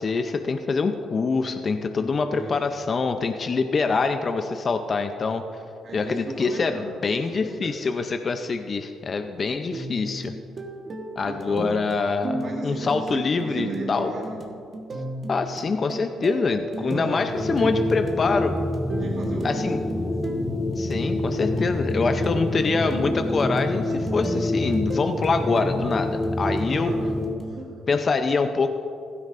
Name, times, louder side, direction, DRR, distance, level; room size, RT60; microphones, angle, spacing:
voice 1, 0.0-5.6 5.9-10.3 11.2-14.1 15.3-18.5 19.4-19.8 20.8-26.9 27.9-28.7, left 4 dB, 40° left, 7 dB, 0.6 m, -25 dB
voice 2, 2.2-2.6 5.8-6.8 7.3-7.7 11.2-11.8 12.4-14.4 16.8-17.2 17.6-18.0 18.9-20.1 22.4-22.7 26.8-27.0 27.4-28.2, right 2 dB, 60° right, -3 dB, 1.8 m, -37 dB
sound 1, 9.7-27.6, right 2 dB, 40° right, 1.3 m, -34 dB
sound 2, 17.2-27.4, left 1 dB, 15° left, 1.1 m, -27 dB
15.5 x 12.5 x 2.6 m, 2.7 s
cardioid pair, 90°, 0 cm